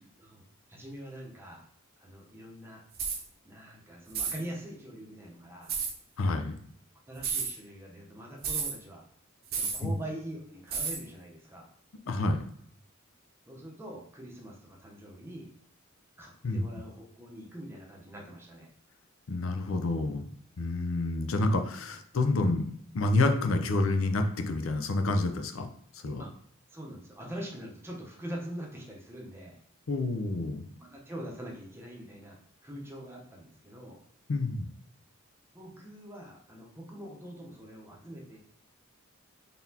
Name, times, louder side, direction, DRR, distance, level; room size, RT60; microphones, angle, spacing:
voice 1, 0.7-1.7 2.0-2.8 3.4-5.8 7.1-9.0 9.5-11.7 13.5-15.5 16.2-18.7 26.2-26.3 26.7-29.6 30.8-32.4 32.6-34.0 35.5-38.4, right 1 dB, 10° right, -2 dB, 0.8 m, -43 dB
sound 1, 2.9-3.2 4.1-4.4 5.7-5.9 7.2-7.5 8.4-8.7 9.5-9.8 10.7-11.0, right 6 dB, 45° right, 0.7 m, -31 dB
voice 2, 6.2-6.6 9.8-9.9 12.1-12.4 16.4-16.7 19.3-20.3 20.6-22.7 22.9-25.7 26.0-26.2 29.9-30.7 34.3-34.7, left 2 dB, 75° left, 6 dB, 0.5 m, -28 dB
4.0 x 3.6 x 2.8 m, 0.66 s
head